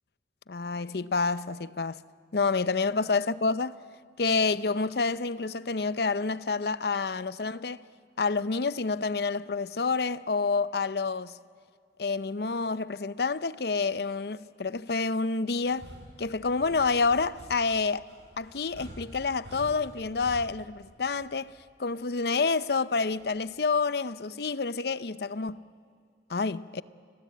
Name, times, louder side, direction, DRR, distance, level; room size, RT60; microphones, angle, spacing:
voice 1, 0.5-2.0 2.3-3.7 4.2-7.8 8.2-11.4 12.0-15.9 16.2-18.1 18.4-21.5 21.8-25.6 26.3-26.8, left 4 dB, 65° left, 0.6 m, -28 dB
sound 1, 15.6-21.7 23.1-23.5, equal, 85° right, 7.6 m, -48 dB
29.5 x 21.5 x 8.5 m
head